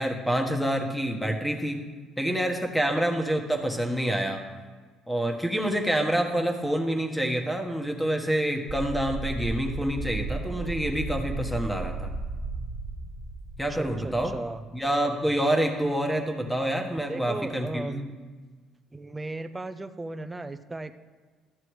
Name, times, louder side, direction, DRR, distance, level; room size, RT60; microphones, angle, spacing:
voice 1, 0.0-1.8 2.2-4.4 5.1-12.1 13.6-14.3 14.7-18.1, right 1 dB, ahead, 3 dB, 1.4 m, -27 dB
sound 1, 8.7-14.7, right 3 dB, 55° right, 1.4 m, -35 dB
voice 2, 13.7-14.6 17.1-18.1 18.9-20.9, right 2 dB, 20° right, 10 dB, 0.6 m, -36 dB
13.0 x 7.5 x 3.2 m, 1.4 s
supercardioid pair, 75°, 0 cm